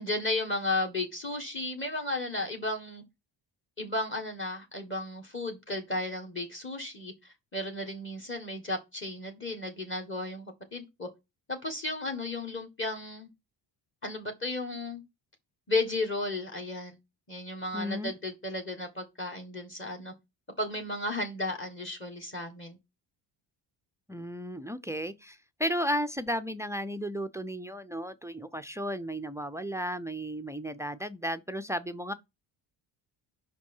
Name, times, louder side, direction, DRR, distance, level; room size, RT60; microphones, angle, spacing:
voice 1, 0.0-3.0 3.8-11.1 11.5-13.3 14.0-15.0 15.7-17.0 17.3-20.1 20.6-22.8, left 2 dB, 25° left, 1.6 m, -34 dB
voice 2, 17.7-18.1 24.1-32.1, equal, 5° right, 0.3 m, -34 dB
5.4 x 5.1 x 5.4 m
cardioid pair, 100°, 47 cm